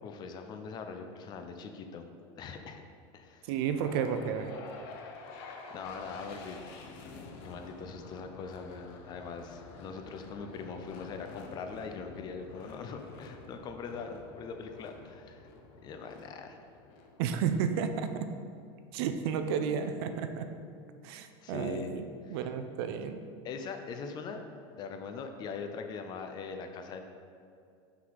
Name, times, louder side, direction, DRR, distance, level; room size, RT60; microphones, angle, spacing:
voice 1, 0.0-2.1 2.4-2.8 3.1-3.5 5.7-15.5 15.8-16.6 21.4-21.9 22.2-22.4 23.4-24.4 24.8-27.0, left 5 dB, 30° left, 6 dB, 0.5 m, -42 dB
voice 2, 3.5-4.5 17.2-18.3 18.9-20.5 21.0-22.1 22.3-23.2, right 7 dB, 70° right, 9 dB, 0.5 m, -32 dB
sound 1, 3.6-17.8, left 3 dB, 65° left, 0.7 m, -49 dB
5.9 x 3.8 x 4.7 m, 2.4 s
supercardioid pair, 150°, 13 cm